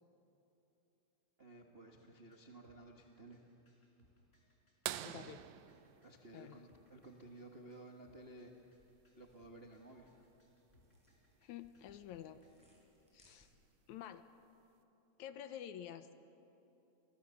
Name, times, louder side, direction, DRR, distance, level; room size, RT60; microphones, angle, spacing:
voice 1, 1.4-3.4 6.0-8.8 9.2-10.2, right 2 dB, 40° right, 1 dB, 0.8 m, -55 dB
sound 1, 2.0-12.7, left 1 dB, 20° left, 4.4 m, -72 dB
sound 2, 4.9-7.3 9.2-9.3 11.6-11.7 13.4-13.6 14.4-14.5, right 13 dB, 75° right, 2.0 m, -46 dB
voice 2, 5.0-5.5 6.3-6.7 11.4-12.4 13.1-13.5 13.9-14.2 15.2-16.1, left 10 dB, 75° left, 11 dB, 2.0 m, -49 dB
sound 3, 8.7-13.9, left 1 dB, ahead, 6.8 m, -73 dB
29.0 x 22.5 x 7.0 m, 2.9 s
omnidirectional pair, 3.6 m